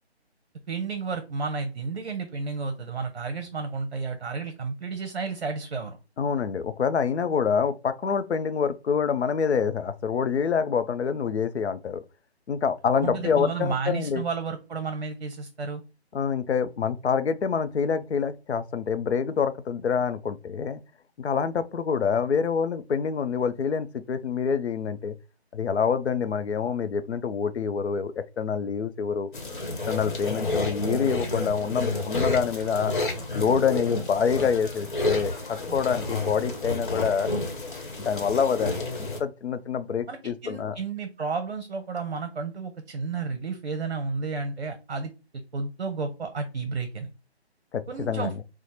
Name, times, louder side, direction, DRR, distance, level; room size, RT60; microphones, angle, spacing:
voice 1, 0.7-6.0 13.0-15.8 40.1-45.1 45.5-47.1 47.9-48.3, right 4 dB, 60° right, 0.7 m, -32 dB
voice 2, 6.2-12.0 12.5-14.2 16.1-20.8 21.2-25.1 25.5-29.3 29.9-32.9 33.3-37.3 38.0-40.8 47.7-48.4, left 6 dB, 80° left, 0.5 m, -26 dB
sound 1, 29.3-39.2, left 2 dB, 50° left, 1.0 m, -30 dB
3.1 x 2.1 x 4.1 m
figure-of-eight pair, 165°, 33 cm